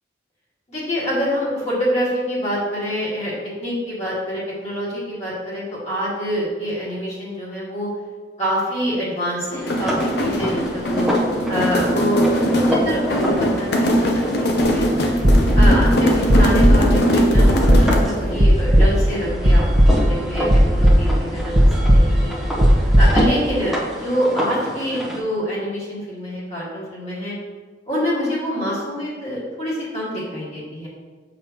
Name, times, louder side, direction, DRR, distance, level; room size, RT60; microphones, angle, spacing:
voice 1, 0.7-7.9 8.4-11.1 11.5-15.1 15.5-21.6 21.9-22.4 23.0-27.3 27.9-30.9, equal, 35° left, -8 dB, 1.9 m, -26 dB
sound 1, 9.5-18.2, equal, 60° left, 0.7 m, -21 dB
sound 2, 9.6-25.2, equal, ahead, 0.9 m, -28 dB
sound 3, 14.6-14.8 15.1-16.0 16.3-16.9 17.3-18.0 18.4-19.2 19.4-20.1 20.5-21.3 21.6-23.1, equal, 40° right, 1.0 m, -14 dB
6.8 x 5.0 x 2.9 m, 1.4 s
head